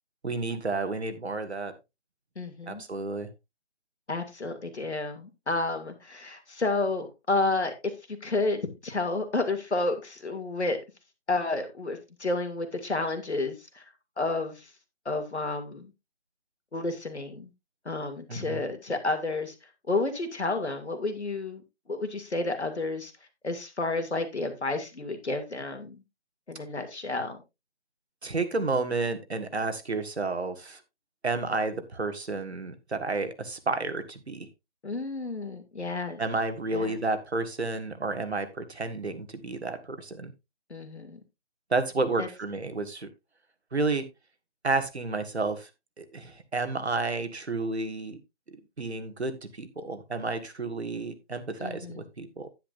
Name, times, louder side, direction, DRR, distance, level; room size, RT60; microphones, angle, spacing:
voice 1, 0.2-1.7 2.7-3.3 18.3-18.6 28.2-30.8 31.2-34.5 36.2-40.3 41.7-43.1 43.7-44.1 44.6-45.7 46.0-48.2 48.8-52.5, right 3 dB, 65° right, 1.9 m, -31 dB
voice 2, 2.4-2.8 4.1-10.8 11.3-13.8 14.2-14.7 15.0-15.9 16.7-17.5 17.8-19.5 19.9-21.6 21.9-23.1 23.4-26.0 26.5-27.4 34.8-36.2 36.7-37.0 40.7-41.2 42.2-42.3 51.6-52.0, left 2 dB, 70° left, 2.7 m, -31 dB
10.0 x 10.0 x 2.6 m
figure-of-eight pair, 175°, 34 cm